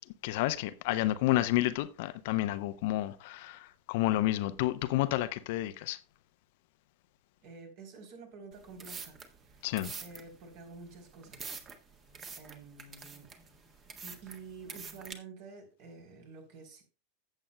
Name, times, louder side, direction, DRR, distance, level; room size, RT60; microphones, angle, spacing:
voice 1, 0.2-6.0 9.6-9.9, left 16 dB, 55° left, 0.7 m, -30 dB
voice 2, 7.4-9.7 10.0-11.4 12.3-13.3 14.0-16.8, right 4 dB, 50° right, 3.5 m, -49 dB
sound 1, 8.5-15.1, right 5 dB, 30° right, 1.5 m, -46 dB
15.5 x 7.6 x 2.2 m
figure-of-eight pair, 90°, 0 cm